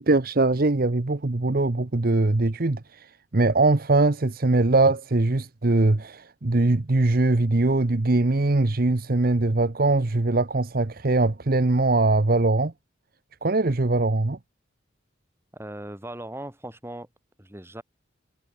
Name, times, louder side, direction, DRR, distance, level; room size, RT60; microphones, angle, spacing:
voice 1, 0.0-12.7 13.4-14.4, right 2 dB, 50° right, 0.9 m, -22 dB
voice 2, 15.5-17.1 17.4-17.8, right 1 dB, 15° right, 4.0 m, -38 dB
head